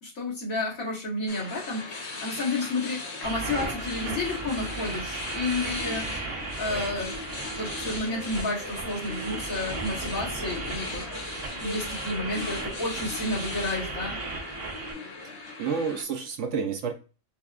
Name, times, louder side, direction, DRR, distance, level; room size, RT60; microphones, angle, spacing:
voice 1, 0.0-7.2 7.5-11.0 11.6-14.3, left 2 dB, 70° left, -6 dB, 2.2 m, -31 dB
sound 1, 1.3-16.0, left 3 dB, 55° left, 1.1 m, -38 dB
sound 2, 3.2-14.9, right 3 dB, 80° right, 1.3 m, -36 dB
voice 2, 15.4-16.9, right 6 dB, 65° right, 5 dB, 0.9 m, -30 dB
5.4 x 2.3 x 2.4 m, 0.35 s
omnidirectional pair, 1.5 m